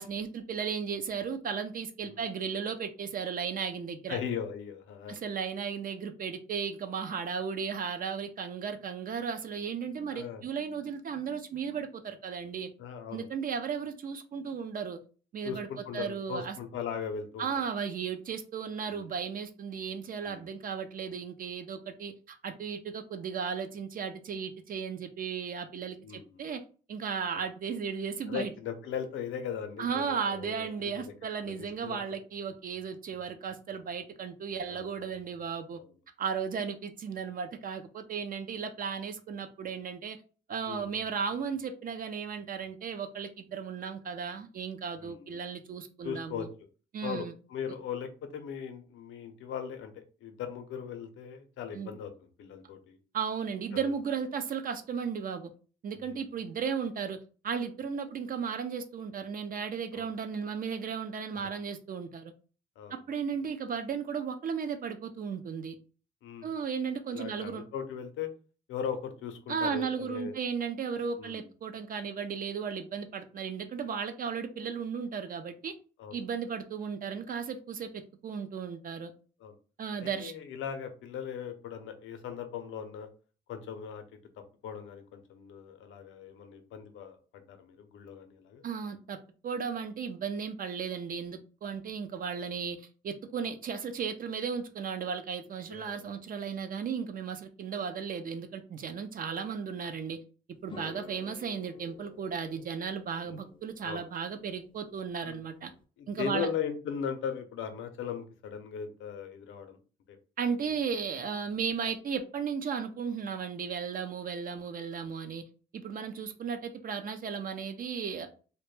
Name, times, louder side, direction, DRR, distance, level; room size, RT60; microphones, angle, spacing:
voice 1, 0.0-4.2 5.1-12.7 13.1-15.0 15.3-15.7 15.9-16.5 17.4-26.6 26.9-28.5 29.8-35.8 36.2-40.2 40.5-46.5 46.9-47.3 51.7-51.9 53.1-55.5 55.8-57.2 57.4-62.3 63.1-65.8 66.4-67.6 69.5-75.8 76.1-79.1 79.8-80.3 88.6-89.2 89.4-100.2 100.6-105.7 106.1-106.5 110.4-115.4 115.7-118.3, right 6 dB, 45° right, 8 dB, 0.4 m, -35 dB
voice 2, 4.1-5.2 10.1-10.4 12.8-13.3 15.4-17.5 18.9-19.1 20.2-20.4 26.0-26.4 28.3-32.0 34.7-34.9 35.8-35.9 40.6-41.0 45.0-45.4 46.0-46.5 47.0-53.0 53.7-53.9 56.0-56.2 59.9-60.1 62.8-63.0 66.2-66.5 67.1-68.3 68.7-70.4 71.2-71.5 76.0-76.2 79.4-79.6 80.0-83.1 83.5-84.0 84.6-88.6 95.7-96.1 103.2-103.4 103.8-104.1 105.2-105.4 106.0-109.8 110.1-110.2 110.7-110.8, left 7 dB, 80° left, 7 dB, 0.5 m, -39 dB
sound 1, 100.7-105.8, left 4 dB, 25° left, 0.4 m, -52 dB
2.1 x 2.1 x 3.0 m, 0.37 s
cardioid pair, 90°, 20 cm